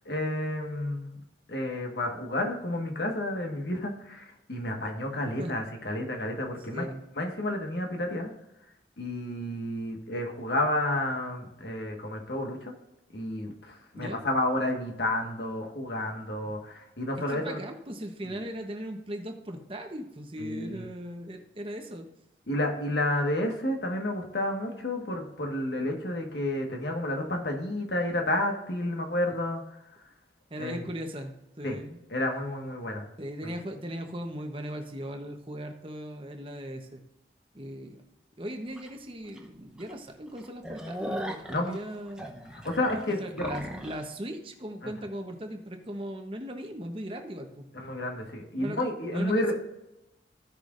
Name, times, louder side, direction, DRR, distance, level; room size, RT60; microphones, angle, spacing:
voice 1, 0.0-1.2 1.5-6.9 7.1-8.3 9.0-12.7 13.1-17.6 18.2-18.3 20.4-20.9 22.5-29.8 30.6-30.9 31.6-31.8 32.1-33.1 33.4-33.5 41.5-41.8 42.5-43.5 44.8-44.9 47.7-49.5, left 1 dB, 75° left, 2 dB, 1.6 m, -31 dB
voice 2, 17.3-22.1 30.5-32.0 33.2-37.0 37.5-38.0 38.4-42.3 43.2-47.6 48.6-48.8 49.1-49.5, equal, 30° right, 4 dB, 1.0 m, -38 dB
sound 1, 38.8-38.9 39.4-39.5 39.8-39.9 40.3-44.0, equal, 5° right, 0.9 m, -38 dB
16.5 x 6.1 x 2.6 m, 0.91 s
head